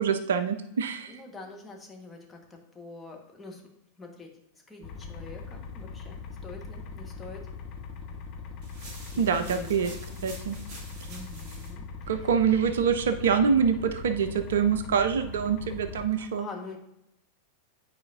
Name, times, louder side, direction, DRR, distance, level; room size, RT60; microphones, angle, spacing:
voice 1, 0.0-1.1 9.2-9.9 10.2-10.6 12.1-16.5, right 7 dB, 60° right, 10 dB, 0.4 m, -25 dB
voice 2, 1.1-3.6 4.0-4.3 4.7-7.4 9.1-10.2 11.1-12.3 16.1-16.8, left 3 dB, 10° left, 0 dB, 1.3 m, -45 dB
sound 1, 4.8-16.1, left 4 dB, 40° left, 0.8 m, -41 dB
sound 2, 8.6-11.7, right 2 dB, 30° right, 2.0 m, -47 dB
9.6 x 4.8 x 2.6 m, 0.83 s
figure-of-eight pair, 90°, 0 cm